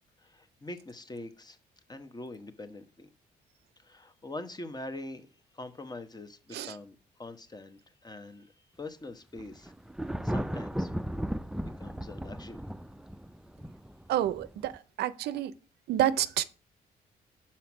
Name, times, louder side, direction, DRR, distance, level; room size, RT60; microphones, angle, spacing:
voice 1, 0.2-1.6 1.9-3.1 3.8-5.3 5.5-9.7 10.2-10.9 11.6-12.6, left 2 dB, 25° left, 1.0 m, -43 dB
Thunder, 9.4-14.8, equal, 5° right, 0.4 m, -36 dB
voice 2, 14.1-15.5 15.9-16.4, right 12 dB, 75° right, 0.5 m, -29 dB
5.8 x 4.3 x 6.0 m
supercardioid pair, 60°, 17 cm